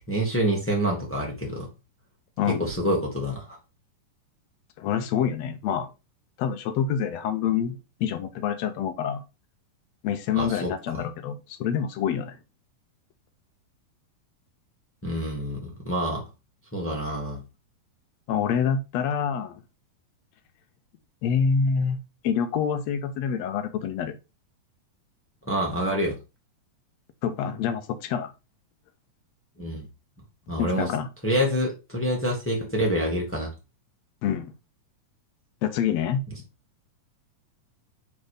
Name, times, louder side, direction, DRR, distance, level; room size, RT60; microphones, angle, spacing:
voice 1, 0.0-1.7 2.6-3.6 10.3-11.0 15.0-16.2 16.7-17.4 25.5-26.2 29.6-29.9 30.5-30.9 31.2-33.5, equal, 5° left, 0.9 m, -27 dB
voice 2, 2.4-2.7 4.8-5.9 6.4-9.2 10.0-12.4 18.3-19.6 21.2-22.0 22.2-24.2 27.2-28.3 30.6-31.1 34.2-34.5 35.6-36.2, left 7 dB, 75° left, 1.6 m, -26 dB
6.6 x 3.6 x 5.0 m
omnidirectional pair, 3.9 m